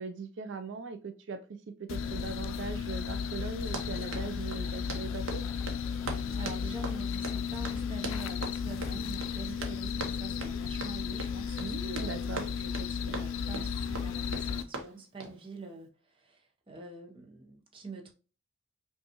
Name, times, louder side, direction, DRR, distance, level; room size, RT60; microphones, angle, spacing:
voice 1, 0.0-1.4 1.8-5.4 11.6-12.5 12.8-12.9, right 4 dB, 65° right, 0.3 m, -40 dB
sound 1, 1.9-14.6, left 6 dB, 85° left, 0.4 m, -34 dB
Run, 3.6-15.4, right 2 dB, 80° right, 0.8 m, -42 dB
sound 2, 3.8-9.1, equal, 5° left, 0.4 m, -53 dB
voice 2, 6.4-18.1, right 3 dB, 25° right, 0.7 m, -46 dB
5.1 x 2.4 x 2.8 m
head